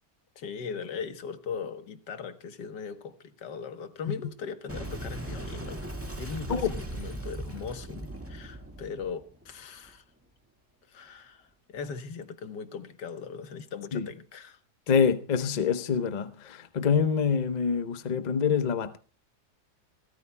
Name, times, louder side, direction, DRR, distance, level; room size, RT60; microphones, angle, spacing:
voice 1, 0.4-5.8 6.2-10.0 10.9-14.6, left 6 dB, 85° left, 1.8 m, -39 dB
Boom, 4.7-9.9, right 1 dB, 10° right, 1.7 m, -38 dB
voice 2, 14.9-19.0, left 6 dB, 40° left, 0.7 m, -26 dB
28.0 x 14.0 x 2.2 m
omnidirectional pair, 1.8 m